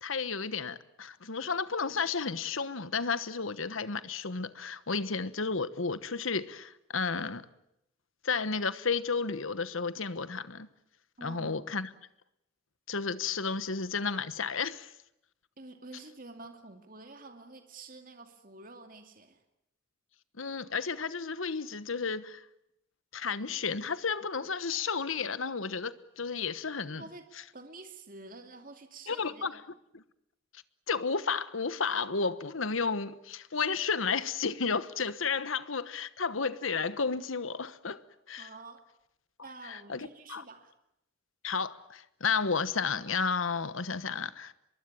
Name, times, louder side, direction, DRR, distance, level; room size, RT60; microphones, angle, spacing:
voice 1, 0.0-7.4 8.2-10.7 11.2-11.9 12.9-14.9 20.4-22.4 23.1-27.0 29.1-29.6 29.9-30.0 30.9-38.0 38.3-38.5 39.7-40.4 41.4-44.5, left 5 dB, 80° left, 1.2 m, -32 dB
voice 2, 11.2-11.7 15.6-19.4 27.0-27.2 27.5-29.6 38.4-38.8 39.4-40.7, right 3 dB, 40° right, 2.5 m, -49 dB
24.5 x 23.0 x 8.9 m
head